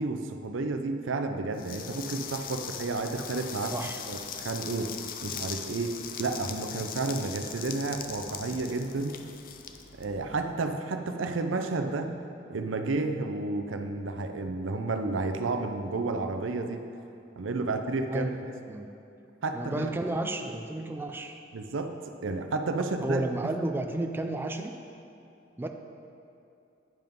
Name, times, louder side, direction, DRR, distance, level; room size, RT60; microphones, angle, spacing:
voice 1, 0.0-3.8 4.1-5.0 5.2-9.2 10.0-12.1 12.5-16.8 17.4-18.3 19.4-19.9 21.5-22.0 22.2-23.5, right 3 dB, 85° right, 6 dB, 0.6 m, -31 dB
sound 1, 1.6-10.5, left 7 dB, 50° left, 0.5 m, -40 dB
voice 2, 8.2-8.6 18.1-18.4 18.7-18.9 19.5-21.4 23.0-24.7 25.6-25.7, right 2 dB, 10° right, 4 dB, 0.4 m, -32 dB
9.1 x 5.8 x 5.3 m, 2.6 s
head